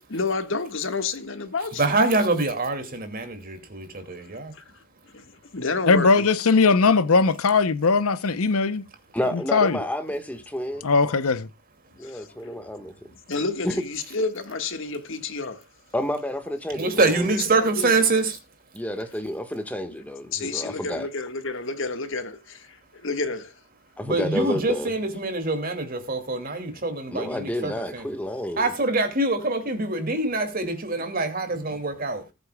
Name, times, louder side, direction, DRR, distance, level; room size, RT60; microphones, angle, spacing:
voice 1, 0.1-2.0 4.5-4.6 5.1-6.3 12.0-12.5 13.3-15.6 17.4-17.9 20.3-22.8 23.0-23.5 31.7-31.8, left 3 dB, 60° left, 1.6 m, -30 dB
voice 2, 1.8-4.5 16.7-18.4 24.0-28.0 28.6-32.2, right 2 dB, 40° right, 2.4 m, -25 dB
voice 3, 5.9-8.8 9.3-9.8 10.8-11.5, left 4 dB, 85° left, 0.8 m, -19 dB
voice 4, 9.1-10.9 12.0-12.9 13.6-13.8 15.9-17.4 18.7-21.1 24.0-25.0 27.1-28.7, left 1 dB, 5° left, 1.5 m, -30 dB
20.0 x 8.0 x 2.3 m
head